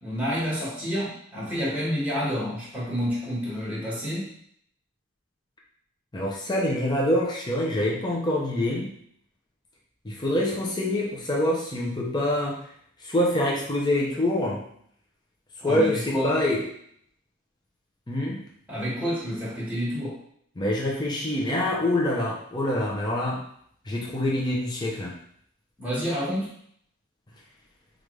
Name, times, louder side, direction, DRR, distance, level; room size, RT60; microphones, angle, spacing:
voice 1, 0.0-4.3 15.6-16.3 18.7-20.2 25.8-26.5, equal, 5° right, -8 dB, 1.4 m, -29 dB
voice 2, 6.1-8.9 10.0-12.6 13.0-14.6 15.6-16.6 18.1-18.4 20.6-23.4 23.9-25.2, left 1 dB, 20° left, -3 dB, 0.6 m, -25 dB
5.0 x 2.5 x 3.2 m, 0.66 s
head